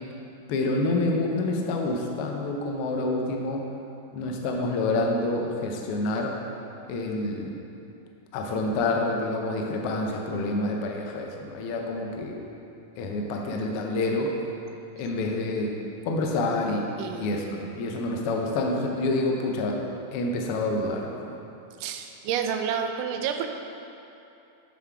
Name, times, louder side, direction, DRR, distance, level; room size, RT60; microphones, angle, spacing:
voice 1, 0.5-3.6 4.1-6.4 6.9-7.6 8.3-12.5 13.0-14.4 15.0-15.8 16.0-19.8 20.1-21.4, left 2 dB, 85° left, 1 dB, 1.2 m, -28 dB
voice 2, 17.0-17.4 21.8-23.5, right 8 dB, 85° right, 4 dB, 1.4 m, -29 dB
7.4 x 5.9 x 4.7 m, 2.8 s
omnidirectional pair, 3.5 m